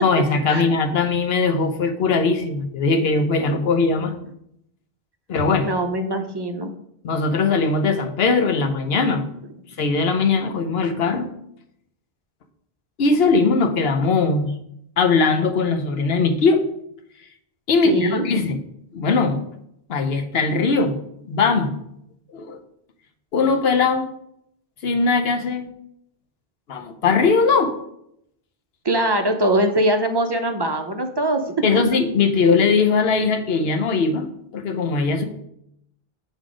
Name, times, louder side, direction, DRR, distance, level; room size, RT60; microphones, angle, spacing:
voice 1, 0.0-4.1 5.3-5.7 7.0-9.3 9.8-11.3 13.0-14.5 15.0-16.6 17.7-18.6 18.9-19.4 19.9-21.0 21.2-21.7 22.3-22.6 23.3-24.1 24.8-25.7 26.7-27.7 31.6-34.3 34.5-35.2, left 4 dB, 75° left, 7 dB, 1.0 m, -20 dB
voice 2, 5.6-6.7 9.8-9.9 17.8-18.3 28.8-31.5, right 1 dB, 30° right, 5 dB, 0.5 m, -22 dB
7.1 x 3.8 x 4.9 m, 0.75 s
omnidirectional pair, 1.0 m